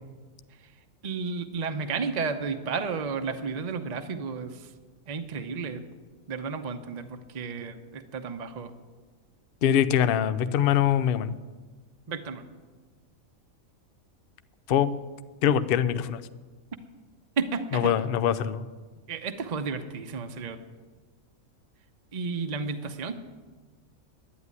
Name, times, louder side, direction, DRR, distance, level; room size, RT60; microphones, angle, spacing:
voice 1, 1.0-4.7 5.1-5.8 6.3-8.7 12.1-12.4 17.4-18.0 19.1-20.6 22.1-23.2, right 5 dB, 35° right, 6 dB, 0.8 m, -32 dB
voice 2, 9.6-11.4 14.7-14.9 15.4-16.2 17.7-18.6, left 9 dB, 55° left, 11 dB, 0.6 m, -23 dB
11.5 x 9.5 x 9.6 m, 1.4 s
omnidirectional pair, 1.5 m